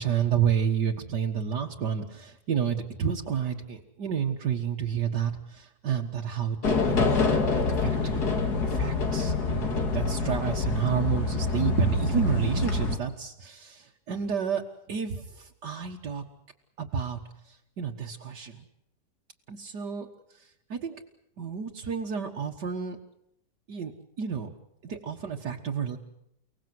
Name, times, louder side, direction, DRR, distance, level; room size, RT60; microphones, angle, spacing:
voice 1, 0.0-7.2 7.6-8.2 8.6-14.6 14.9-16.2 16.8-17.2 17.5-18.7 19.5-20.1 20.7-21.0 21.4-23.0 23.7-23.9 24.2-24.5 24.8-26.0, right 7 dB, 70° right, 0 dB, 2.1 m, -30 dB
sound 1, 6.6-13.0, left 3 dB, 60° left, 2.9 m, -26 dB
30.0 x 18.5 x 7.9 m, 0.78 s
omnidirectional pair, 1.9 m